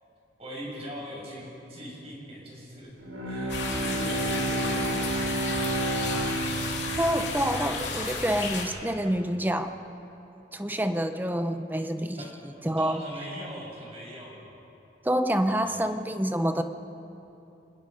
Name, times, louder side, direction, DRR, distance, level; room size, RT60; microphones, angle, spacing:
voice 1, 0.4-2.9 3.2-5.8 12.2-12.3 12.8-14.5 15.5-15.8, equal, 30° right, -3 dB, 6.6 m, -41 dB
Bowed string instrument, 3.0-8.4, right 2 dB, 90° right, 3.0 m, -31 dB
sound 1, 3.5-8.7, left 4 dB, 65° left, 3.2 m, -33 dB
voice 2, 7.0-9.7 10.5-12.3 12.6-13.0 15.0-16.6, equal, 10° right, 8 dB, 0.8 m, -27 dB
26.5 x 20.0 x 5.4 m, 2.9 s
head